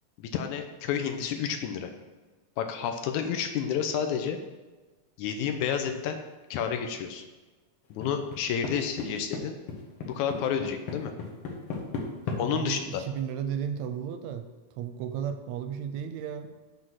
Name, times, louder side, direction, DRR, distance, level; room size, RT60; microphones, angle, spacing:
voice 1, 0.2-1.9 2.6-4.4 5.2-6.2 6.5-7.2 7.9-9.5 10.1-11.1 12.4-13.0, left 8 dB, 80° left, 6 dB, 2.0 m, -30 dB
sound 1, 8.0-8.7 9.0-9.4 9.7-12.4, left 5 dB, 60° left, 1.4 m, -33 dB
voice 2, 12.5-14.5 14.8-16.6, right 8 dB, 80° right, 8 dB, 1.7 m, -34 dB
7.7 x 3.9 x 6.0 m, 1.2 s
omnidirectional pair, 3.5 m